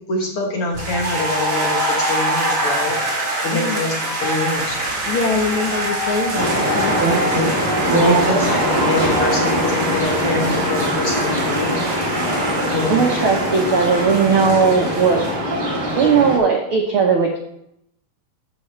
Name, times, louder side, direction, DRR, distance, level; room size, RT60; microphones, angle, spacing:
voice 1, 0.0-2.9 3.4-4.0 4.2-4.8 7.3-7.5 7.9-12.0 12.7-13.0, left 2 dB, 60° left, 0 dB, 1.6 m, -24 dB
sound 1, 0.7-15.3, right 1 dB, 40° right, 2.9 m, -25 dB
voice 2, 3.5-3.8 5.1-7.3, left 4 dB, 80° left, 1 dB, 1.2 m, -24 dB
sound 2, 4.6-10.0, right 4 dB, 55° right, 2.3 m, -36 dB
sound 3, 6.3-16.4, equal, 20° right, 1.9 m, -22 dB
voice 3, 7.9-8.3 12.9-15.2 16.0-17.4, right 5 dB, 75° right, 0 dB, 1.2 m, -17 dB
14.5 x 5.7 x 3.2 m, 0.76 s
omnidirectional pair, 3.9 m